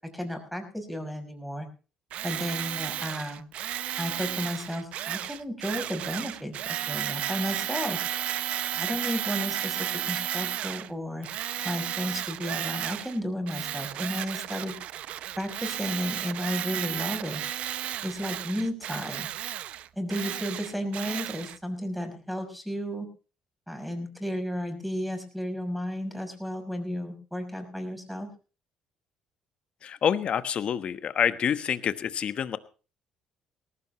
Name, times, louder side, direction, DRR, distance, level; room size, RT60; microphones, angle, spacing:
voice 1, 0.0-1.7 2.2-3.4 4.0-8.0 8.7-11.3 11.6-14.7 15.4-17.4 18.0-19.3 20.0-23.1 23.7-28.3, equal, ahead, 5 dB, 6.0 m, -33 dB
Tools, 2.1-10.9 11.2-13.2 13.5-21.6, right 12 dB, 65° right, 0.6 m, -33 dB
voice 2, 29.8-32.6, left 8 dB, 55° left, 12 dB, 1.2 m, -27 dB
18.5 x 15.5 x 3.1 m, 0.35 s
supercardioid pair, 65°, 2 cm